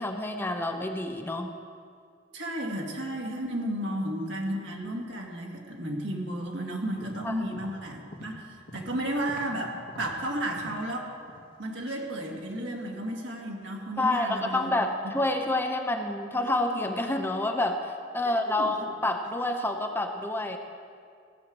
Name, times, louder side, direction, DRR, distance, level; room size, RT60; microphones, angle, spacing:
voice 1, 0.0-1.5 7.2-7.5 14.0-20.6, left 2 dB, 10° left, 4 dB, 0.7 m, -28 dB
voice 2, 2.3-11.1 11.6-14.7 18.5-18.7, right 1 dB, 70° right, 0 dB, 2.1 m, -33 dB
sound 1, 6.8-9.6 9.9-10.9 11.3-11.6 11.9-12.0, left 1 dB, 55° left, 1.8 m, -45 dB
16.0 x 6.5 x 7.8 m, 2.2 s
head